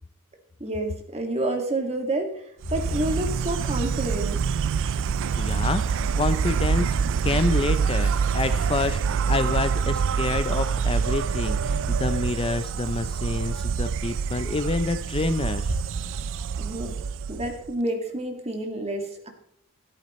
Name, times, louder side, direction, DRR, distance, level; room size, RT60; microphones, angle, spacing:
voice 1, 0.6-2.4 2.7-4.4 16.6-17.0 17.3-19.3, right 1 dB, 30° right, 4 dB, 2.0 m, -29 dB
Insect, 2.6-17.7, right 6 dB, 60° right, 0.4 m, -26 dB
voice 2, 5.4-7.0 7.2-15.8, left 3 dB, 25° left, 11 dB, 0.5 m, -28 dB
13.0 x 10.5 x 3.1 m, 0.71 s
head